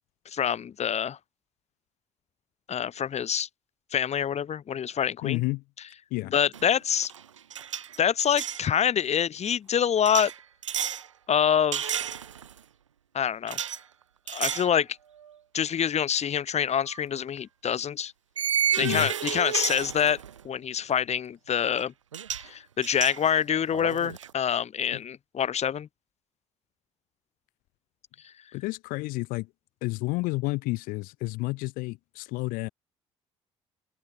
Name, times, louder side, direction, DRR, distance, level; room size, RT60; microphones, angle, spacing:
voice 1, 0.3-1.2 2.7-3.5 3.9-5.4 6.3-7.1 8.0-10.3 11.3-12.0 13.1-13.6 14.3-14.9 15.5-18.1 18.8-21.9 22.4-25.9, left 8 dB, 45° left, 2.4 m, -26 dB
voice 2, 5.2-5.6 6.1-6.3 18.8-19.1 24.9-25.0 28.5-29.5 29.8-32.7, left 23 dB, 65° left, 2.0 m, -30 dB
sound 1, 6.5-6.8 7.0-8.7 10.1-11.1 11.7-12.6 13.5-13.8 14.3-14.7 15.2-15.3 16.9-17.0 18.4-20.4 21.8-21.9 22.1-22.5 22.8-24.3, right 9 dB, 85° right, 0.8 m, -31 dB
open air
figure-of-eight pair, 50°, 16 cm